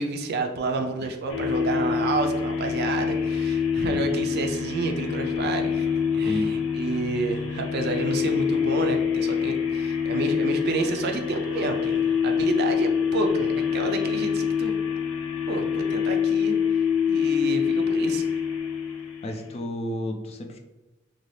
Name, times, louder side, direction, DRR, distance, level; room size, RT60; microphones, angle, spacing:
voice 1, 0.0-14.7 15.5-16.5 17.1-18.2, right 3 dB, 50° right, 5 dB, 0.4 m, -29 dB
sound 1, 1.3-19.6, left 7 dB, 90° left, 0.5 m, -26 dB
voice 2, 19.2-20.6, left 1 dB, 30° left, 4 dB, 0.3 m, -31 dB
2.7 x 2.3 x 3.1 m, 1.1 s
head